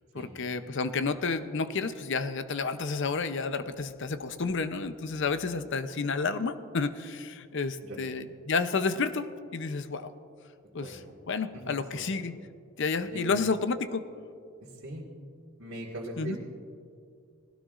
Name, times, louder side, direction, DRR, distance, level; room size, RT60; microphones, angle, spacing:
voice 1, 0.1-10.1 10.7-10.9 11.3-12.3 12.8-14.1 16.2-16.4, left 4 dB, 55° left, 11 dB, 0.6 m, -30 dB
voice 2, 11.5-12.1 13.0-13.4 14.6-15.0 15.6-16.4, right 1 dB, 60° right, -7 dB, 1.9 m, -40 dB
19.0 x 16.5 x 2.5 m, 2.4 s
head